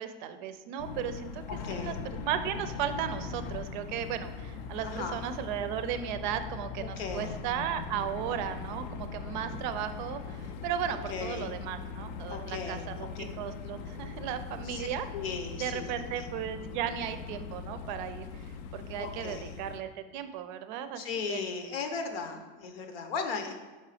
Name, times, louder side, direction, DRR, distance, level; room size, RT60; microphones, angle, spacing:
voice 1, 0.0-1.4 1.7-15.1 15.6-18.3 18.7-21.0 21.3-21.4, right 9 dB, 55° right, 10 dB, 0.5 m, -35 dB
sound 1, 0.8-19.8, left 5 dB, 45° left, 0.4 m, -40 dB
voice 2, 1.5-2.0 4.8-5.2 7.0-7.3 10.9-11.5 12.3-13.2 14.6-15.9 16.2-16.3 18.9-19.6 20.9-23.5, left 5 dB, 80° left, 6 dB, 1.0 m, -37 dB
5.4 x 3.8 x 4.9 m, 1.3 s
supercardioid pair, 170°, 29 cm